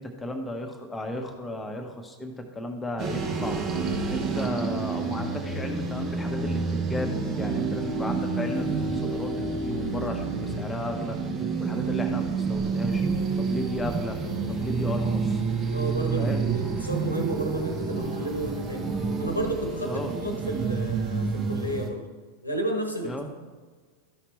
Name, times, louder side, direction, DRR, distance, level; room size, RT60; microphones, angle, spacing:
voice 1, 0.0-3.6 4.1-11.2 11.6-13.1 13.4-14.2 14.5-15.4 16.2-16.4 19.9-20.1 23.0-23.3, left 1 dB, 10° left, 3 dB, 1.3 m, -34 dB
sound 1, 3.0-21.9, right 4 dB, 30° right, 1.1 m, -29 dB
voice 2, 15.7-18.9 19.2-22.1 22.4-23.3, right 2 dB, 85° left, 4 dB, 1.2 m, -32 dB
13.5 x 5.7 x 3.2 m, 1.4 s
figure-of-eight pair, 90°, 0 cm